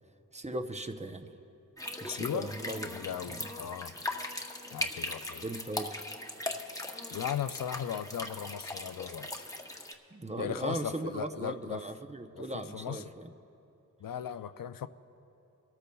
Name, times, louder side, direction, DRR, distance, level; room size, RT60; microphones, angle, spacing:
voice 1, 0.3-1.3 2.0-2.9 3.3-3.5 5.4-5.9 10.1-13.3, right 1 dB, 20° right, 7 dB, 0.7 m, -38 dB
sound 1, 1.8-9.9, left 1 dB, 10° left, 0.8 m, -39 dB
voice 2, 2.1-2.5 2.8-4.0 4.7-5.5 7.1-9.4 10.4-11.8 12.4-12.5 12.7-13.0 14.0-14.9, left 9 dB, 80° left, 12 dB, 0.5 m, -37 dB
27.0 x 13.5 x 2.3 m, 2.8 s
wide cardioid pair, 75°, 33 cm